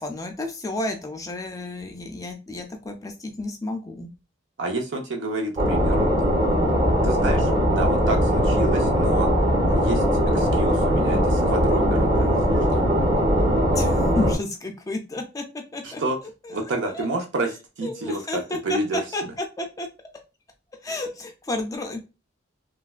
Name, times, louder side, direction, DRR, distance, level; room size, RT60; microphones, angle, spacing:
voice 1, 0.0-4.1 13.7-16.6 16.9-17.1 17.8-19.9 20.8-22.0, left 2 dB, 20° left, 4 dB, 0.4 m, -32 dB
voice 2, 4.6-6.1 7.0-10.0 10.3-12.8 15.8-16.2 16.5-19.0, right 2 dB, 70° right, 2 dB, 0.6 m, -29 dB
sound 1, 5.6-14.3, equal, 25° right, 0.8 m, -20 dB
3.2 x 2.2 x 2.4 m, 0.29 s
head